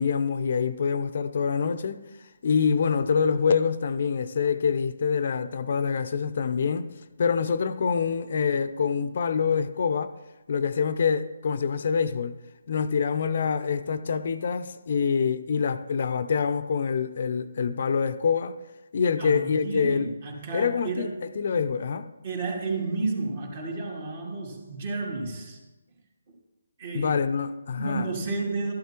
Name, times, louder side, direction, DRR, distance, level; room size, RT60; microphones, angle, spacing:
voice 1, 0.0-2.0 2.4-6.9 7.2-10.1 10.5-12.3 12.7-18.5 18.9-20.1 20.5-21.1 21.4-22.1 26.9-28.1, left 6 dB, 50° left, 0.5 m, -25 dB
voice 2, 19.2-21.1 22.2-25.6 26.8-27.1 27.7-28.7, right 3 dB, 45° right, 2.6 m, -31 dB
12.5 x 11.5 x 2.9 m
figure-of-eight pair, 150°, 0 cm